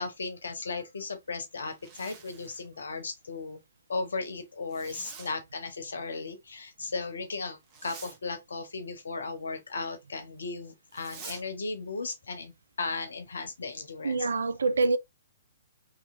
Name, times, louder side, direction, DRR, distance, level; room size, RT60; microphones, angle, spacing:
voice 1, 0.0-3.6 3.9-14.3, left 3 dB, 70° left, 0.7 m, -36 dB
Zipper (clothing), 1.6-2.7 4.7-5.3 7.6-8.2 10.9-11.4, right 5 dB, 30° right, 0.8 m, -46 dB
voice 2, 14.0-15.0, right 3 dB, 70° right, 0.3 m, -25 dB
2.8 x 2.8 x 2.4 m
figure-of-eight pair, 120°, 0 cm